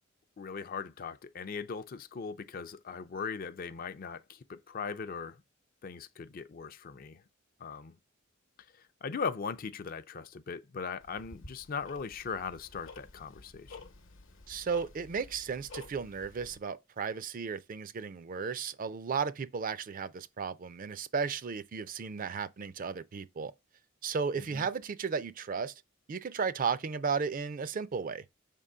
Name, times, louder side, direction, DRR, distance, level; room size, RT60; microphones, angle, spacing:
voice 1, 0.4-5.4 5.8-7.2 7.6-8.0 9.0-13.8 24.5-24.7, left 5 dB, 45° left, 0.4 m, -39 dB
Tick-tock, 11.0-16.6, left 3 dB, 70° left, 0.9 m, -51 dB
voice 2, 14.5-23.5 24.0-25.7 26.1-28.2, right 5 dB, 40° right, 0.4 m, -34 dB
5.2 x 3.7 x 5.5 m
head